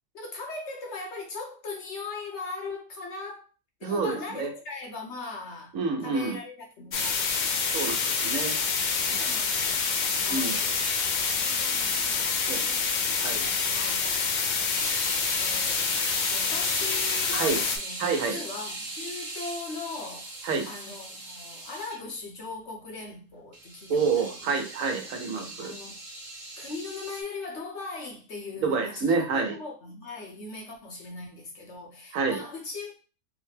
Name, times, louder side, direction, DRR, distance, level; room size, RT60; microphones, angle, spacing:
voice 1, 0.1-3.4 3.8-5.8 6.0-7.3 7.7-8.1 9.1-10.8 11.3-14.1 15.4-15.9 16.3-20.3 20.6-24.6 25.3-26.0 26.6-33.0, left 3 dB, 60° left, 1.2 m, -39 dB
voice 2, 3.8-4.5 5.7-6.4 7.7-8.6 9.1-9.2 10.3-10.5 12.5-12.7 13.2-13.5 17.3-17.6 18.0-18.4 20.4-20.7 23.9-25.7 28.6-29.6 32.1-32.4, right 4 dB, 80° right, 1.1 m, -28 dB
sound 1, 6.9-17.8, left 5 dB, 90° left, 0.4 m, -27 dB
sound 2, 14.7-22.0 23.5-27.2, right 2 dB, 50° right, 1.0 m, -39 dB
4.0 x 2.1 x 3.2 m
omnidirectional pair, 1.4 m